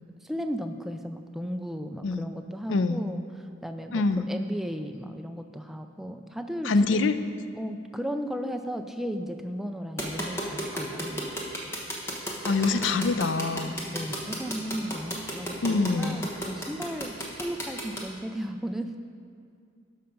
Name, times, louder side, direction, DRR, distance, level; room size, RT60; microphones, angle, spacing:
voice 1, 0.2-7.0 7.5-11.4 13.9-18.9, equal, ahead, 6 dB, 0.3 m, -35 dB
voice 2, 2.7-3.0 3.9-4.3 6.6-7.2 12.4-13.8 15.6-16.2, left 3 dB, 75° left, 11 dB, 0.4 m, -25 dB
sound 1, 10.0-18.0, equal, 15° left, 1.1 m, -32 dB
12.0 x 5.7 x 5.1 m, 2.3 s
head